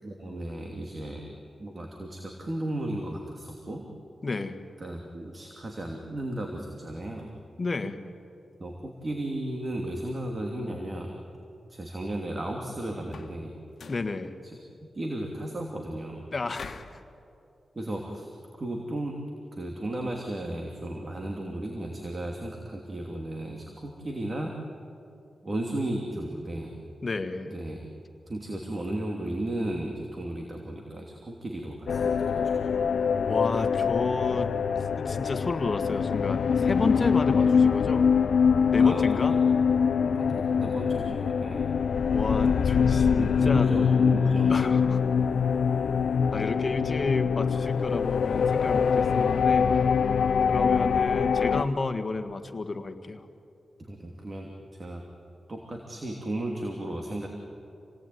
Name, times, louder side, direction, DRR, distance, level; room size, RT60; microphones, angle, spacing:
voice 1, 0.0-1.3 1.6-3.9 4.8-7.3 8.6-11.2 11.7-13.6 14.9-16.2 17.7-18.3 18.6-19.2 19.5-24.6 25.4-26.8 27.4-27.9 28.3-32.6 38.8-39.4 39.9-41.7 43.2-44.5 53.8-55.0 55.5-57.3, right 1 dB, 35° right, 1 dB, 2.9 m, -35 dB
voice 2, 4.2-4.6 7.6-8.0 13.9-14.4 16.3-16.8 27.0-27.5 33.3-34.5 35.0-38.1 38.7-39.3 42.1-43.7 44.5-45.0 46.3-49.8 50.5-53.3, left 3 dB, 40° left, 7 dB, 1.7 m, -31 dB
sound 1, 13.0-13.4 13.7-14.1 16.5-17.0, left 5 dB, 65° left, 1.6 m, -44 dB
sound 2, 31.9-51.6, left 6 dB, 85° left, 0.7 m, -24 dB
28.0 x 18.5 x 9.4 m, 2.7 s
cardioid pair, 80°, 0 cm